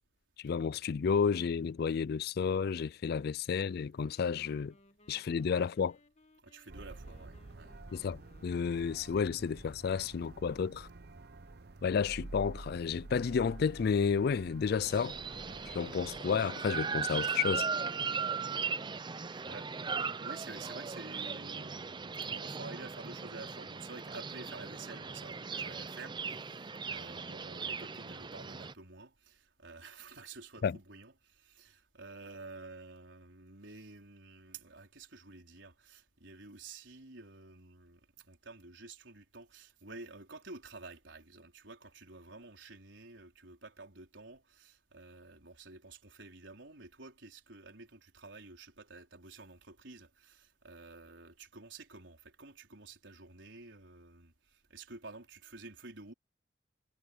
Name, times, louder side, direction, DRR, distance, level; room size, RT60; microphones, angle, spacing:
voice 1, 0.4-4.7 5.1-6.0 7.9-10.9 11.8-15.2 15.7-17.7 30.6-30.8, left 6 dB, 60° left, 0.4 m, -31 dB
Wind instrument woodwind instrument, 3.9-9.2, left 2 dB, 35° left, 1.9 m, -63 dB
voice 2, 6.4-7.7 19.4-19.7 20.2-56.1, right 3 dB, 85° right, 4.3 m, -50 dB
sound 1, 6.7-16.2, right 2 dB, 60° right, 0.8 m, -49 dB
sound 2, 14.8-28.7, right 5 dB, 25° right, 0.6 m, -38 dB
head